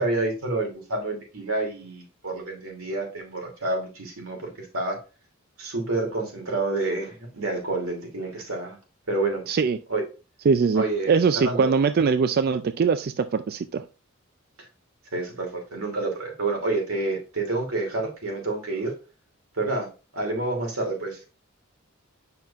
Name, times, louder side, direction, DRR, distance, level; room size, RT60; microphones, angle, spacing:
voice 1, 0.0-5.0 5.6-8.8 9.1-9.4 9.9-10.0 10.7-11.7 15.1-18.9 19.6-19.9 20.1-21.3, right 2 dB, 90° right, 1 dB, 2.7 m, -28 dB
voice 2, 9.5-9.8 10.5-13.8, right 5 dB, 45° right, 11 dB, 0.3 m, -22 dB
7.3 x 5.8 x 2.4 m, 0.32 s
head